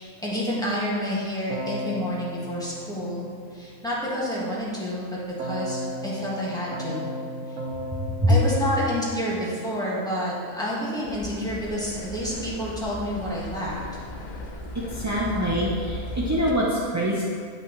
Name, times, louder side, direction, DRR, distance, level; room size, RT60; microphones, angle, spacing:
voice 1, 0.0-7.1 7.5-7.6 8.3-13.8, equal, 5° left, -8 dB, 1.6 m, -29 dB
Keyboard (musical), 1.5-3.8 5.4-9.7, equal, 70° right, 1.4 m, -35 dB
sound 1, 8.3-10.7, equal, 20° left, 1.8 m, -40 dB
sound 2, 11.1-16.5, left 1 dB, 85° left, 0.4 m, -36 dB
voice 2, 14.7-17.2, equal, 20° right, -6 dB, 0.4 m, -24 dB
9.7 x 5.7 x 3.2 m, 2.1 s
omnidirectional pair, 1.6 m